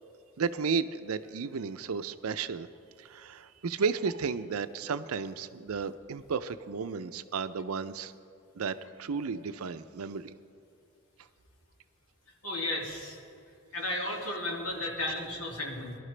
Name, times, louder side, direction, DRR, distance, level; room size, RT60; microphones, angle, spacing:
voice 1, 0.4-2.7 3.0-8.1 8.6-10.3, right 5 dB, 85° right, 12 dB, 0.5 m, -33 dB
voice 2, 12.4-13.2 13.7-16.0, left 1 dB, 75° left, -1 dB, 2.5 m, -34 dB
21.0 x 12.0 x 3.3 m, 2.6 s
head